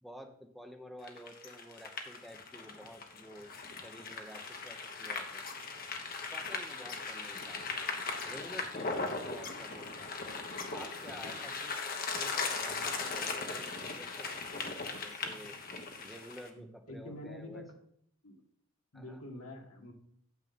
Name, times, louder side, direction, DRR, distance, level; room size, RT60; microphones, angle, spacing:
voice 1, 0.0-3.5 3.8-5.4 6.3-7.7 8.2-10.1 10.7-11.7 12.2-14.5 15.0-15.6 16.0-17.6 18.9-19.2, equal, ahead, 3 dB, 0.8 m, -50 dB
sound 1, 1.0-16.5, left 4 dB, 40° left, 1.1 m, -39 dB
voice 2, 16.5-17.7 18.2-18.4 18.9-19.9, left 1 dB, 80° left, 2 dB, 1.8 m, -46 dB
9.2 x 7.3 x 4.2 m, 0.69 s
head